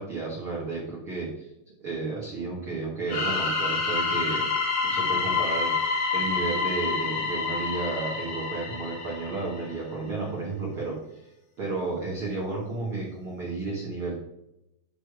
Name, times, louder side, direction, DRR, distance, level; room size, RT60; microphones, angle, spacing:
voice 1, 0.0-1.5 1.8-4.5 4.8-5.7 6.1-11.3 11.6-14.1, right 3 dB, 80° right, -4 dB, 1.1 m, -32 dB
sound 1, 3.1-9.7, left 4 dB, 60° left, 1.6 m, -28 dB
9.0 x 3.4 x 4.6 m, 0.87 s
omnidirectional pair, 5.0 m